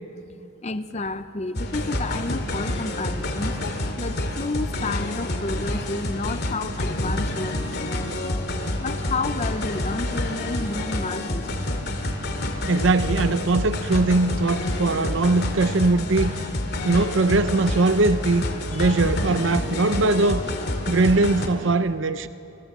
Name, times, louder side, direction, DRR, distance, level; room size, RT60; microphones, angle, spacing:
voice 1, 0.6-8.5 8.8-11.9 18.7-19.0, left 3 dB, 30° left, 0.6 m, -31 dB
sound 1, 1.6-21.5, left 1 dB, 50° left, 2.5 m, -28 dB
voice 2, 12.7-16.3 16.8-18.4 18.7-20.6 20.9-22.3, right 3 dB, 65° right, 0.7 m, -21 dB
28.5 x 26.5 x 7.3 m
head